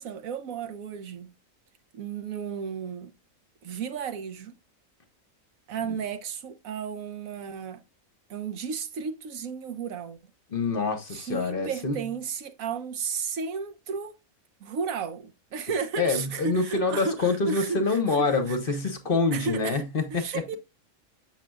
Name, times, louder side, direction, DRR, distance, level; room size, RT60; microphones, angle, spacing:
voice 1, 0.0-1.3 1.9-3.1 3.6-4.6 5.7-7.8 8.3-10.2 11.1-14.2 14.6-18.8 19.3-20.6, right 6 dB, 80° right, 1.3 m, -34 dB
voice 2, 10.5-12.0 16.0-20.3, left 3 dB, 45° left, 1.0 m, -26 dB
7.4 x 6.1 x 2.2 m
omnidirectional pair, 1.4 m